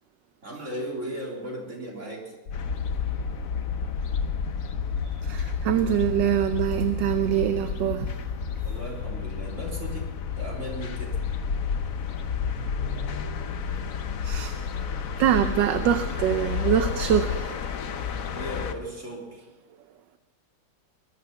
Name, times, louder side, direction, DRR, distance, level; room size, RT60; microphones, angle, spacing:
voice 1, 0.4-2.3 8.6-10.1 10.4-11.2 18.3-19.4, equal, 35° right, 4.0 m, -36 dB
sound 1, 2.5-17.4, left 5 dB, 80° left, 2.1 m, -32 dB
sound 2, 2.5-18.7, left 7 dB, 55° left, 1.1 m, -35 dB
voice 2, 5.2-8.1 14.2-14.5 15.2-17.6, right 10 dB, 70° right, 1.3 m, -24 dB
21.0 x 11.0 x 5.8 m
omnidirectional pair, 2.2 m